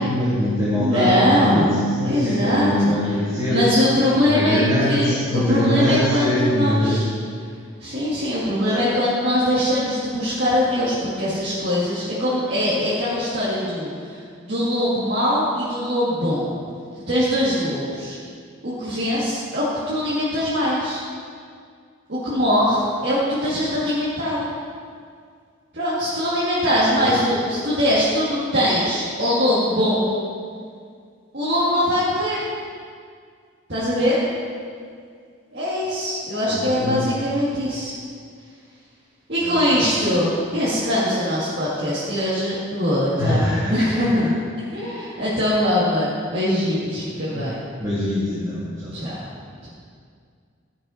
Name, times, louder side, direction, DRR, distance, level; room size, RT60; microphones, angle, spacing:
voice 1, 0.0-3.6 4.1-7.0 8.7-8.9 27.0-27.1 36.5-37.0 39.4-39.6 43.2-44.0 47.3-47.5 47.8-49.1, left 1 dB, 15° right, -11 dB, 2.3 m, -22 dB
voice 2, 0.8-1.7 2.0-2.9 3.5-4.6 4.9-7.1 7.8-16.5 17.1-18.2 18.6-21.0 22.1-24.4 25.7-30.1 31.3-32.5 33.7-34.2 35.5-38.0 39.3-44.4 44.7-47.6 48.9-49.2, left 1 dB, 55° right, -10 dB, 2.3 m, -22 dB
13.5 x 6.3 x 5.7 m, 2.1 s
head